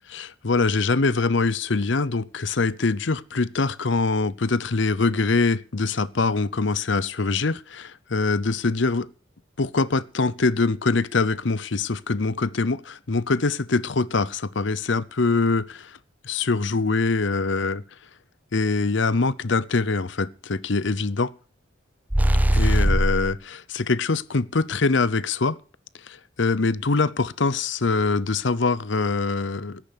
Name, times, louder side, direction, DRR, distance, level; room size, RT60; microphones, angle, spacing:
voice 1, 0.1-9.1 9.6-15.9 16.2-17.8 18.5-21.3 22.5-25.6 26.1-29.8, left 3 dB, 65° left, 0.8 m, -23 dB
sound 1, 22.1-23.3, right 1 dB, 10° right, 0.6 m, -19 dB
13.5 x 10.5 x 6.6 m
head